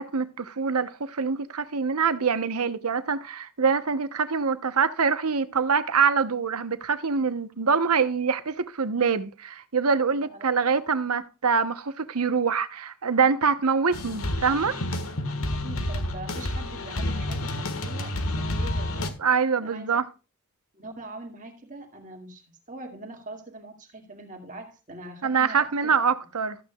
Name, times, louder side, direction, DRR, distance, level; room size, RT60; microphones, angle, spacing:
voice 1, 0.0-14.8 19.2-20.1 25.2-26.6, right 5 dB, 90° right, 1.0 m, -25 dB
sound 1, 13.9-19.1, left 1 dB, 75° left, 1.6 m, -29 dB
voice 2, 15.5-19.2 19.6-20.0 20.7-22.4 22.7-26.0, right 2 dB, 35° right, 2.2 m, -42 dB
14.0 x 9.0 x 2.3 m
head